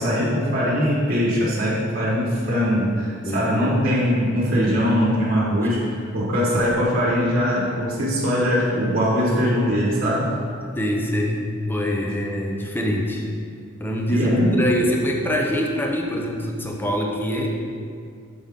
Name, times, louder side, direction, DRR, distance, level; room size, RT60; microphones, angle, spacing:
voice 1, 0.0-10.3 14.1-14.6, equal, 45° right, -6 dB, 1.3 m, -21 dB
voice 2, 3.2-3.8 4.6-4.9 10.7-13.3 13.8-17.5, equal, 10° left, 0 dB, 0.6 m, -24 dB
6.8 x 5.5 x 3.6 m, 2.2 s
head